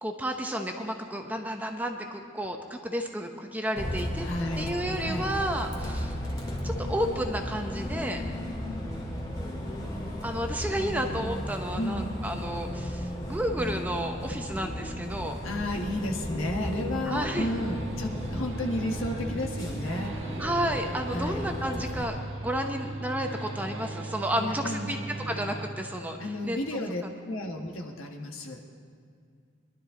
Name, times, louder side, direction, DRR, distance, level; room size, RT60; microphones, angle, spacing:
voice 1, 0.0-4.3 4.6-6.1 6.6-8.2 10.2-15.3 17.1-17.5 20.4-25.0 25.3-26.6 27.0-27.1, equal, 10° right, 4 dB, 0.8 m, -32 dB
Bus, 3.8-22.0, left 1 dB, 20° left, 2.0 m, -35 dB
voice 2, 4.2-4.7 5.0-5.3 11.7-12.2 15.4-20.2 21.1-21.4 24.3-25.0 26.2-28.6, left 1 dB, 80° left, 2 dB, 1.6 m, -33 dB
sound 1, 17.1-25.7, right 2 dB, 65° right, 1.4 m, -38 dB
22.0 x 12.0 x 3.8 m, 2.2 s
head